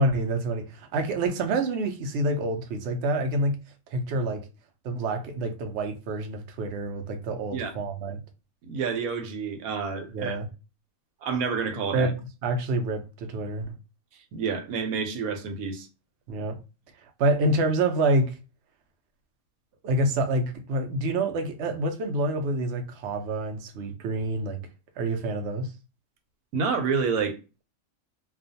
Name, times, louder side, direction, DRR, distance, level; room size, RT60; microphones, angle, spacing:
voice 1, 0.0-3.6 3.9-4.5 4.8-8.2 10.1-10.5 11.9-13.7 16.3-16.6 17.2-18.3 19.8-24.6 25.0-25.7, right 2 dB, 65° right, 0.7 m, -27 dB
voice 2, 8.7-10.4 11.2-12.1 14.3-15.9 26.5-27.4, right 5 dB, 90° right, 1.1 m, -28 dB
2.4 x 2.3 x 2.5 m
omnidirectional pair, 1.5 m